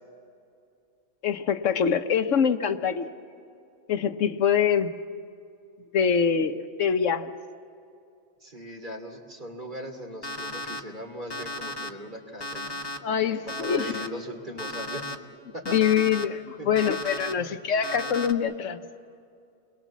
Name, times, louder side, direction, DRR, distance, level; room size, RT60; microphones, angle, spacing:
voice 1, 1.2-3.1 3.9-4.9 5.9-7.3 13.0-13.9 15.7-18.8, left 7 dB, 75° left, 9 dB, 1.2 m, -24 dB
voice 2, 8.4-12.9 13.2-15.2 15.5-15.7 16.6-16.7 17.4-17.5, equal, 40° right, 2 dB, 3.0 m, -39 dB
Alarm, 10.2-10.8 11.3-11.9 12.4-13.0 13.5-14.1 14.6-15.2 15.7-16.2 16.8-17.3 17.8-18.3, left 1 dB, 20° left, 1.1 m, -35 dB
29.5 x 22.0 x 7.3 m, 2.5 s
omnidirectional pair, 1.3 m